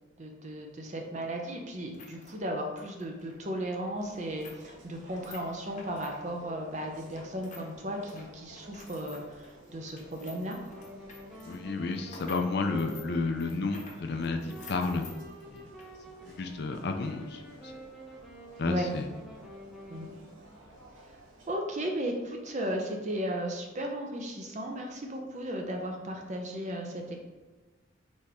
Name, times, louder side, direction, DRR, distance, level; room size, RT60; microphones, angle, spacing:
voice 1, 0.2-10.6 18.7-18.9 19.9-20.1 21.5-27.2, right 1 dB, 35° right, 2 dB, 0.6 m, -35 dB
sound 1, 1.8-7.7 8.0-15.9 16.2-16.3 17.0-17.2, left 3 dB, 40° left, 0.9 m, -52 dB
sound 2, 4.0-21.5, right 1 dB, 75° right, 1.1 m, -54 dB
Wind instrument woodwind instrument, 10.6-20.2, right 1 dB, ahead, 0.7 m, -49 dB
voice 2, 11.4-15.1 15.5-15.6 16.3-17.7 18.6-19.1, left 3 dB, 55° left, 5 dB, 0.4 m, -31 dB
4.1 x 3.3 x 3.5 m, 1.2 s
head